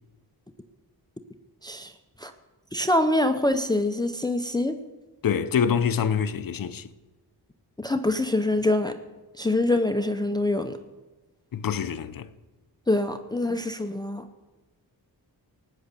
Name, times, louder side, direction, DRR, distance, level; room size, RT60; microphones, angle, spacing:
voice 1, 1.6-1.9 2.2-2.3 2.7-4.8 7.8-9.0 9.4-10.8 12.9-14.3, left 1 dB, 10° left, 0.6 m, -25 dB
voice 2, 5.2-6.9 11.5-12.3, left 7 dB, 60° left, 0.8 m, -25 dB
18.5 x 9.2 x 6.7 m
wide cardioid pair, 150°, 40 cm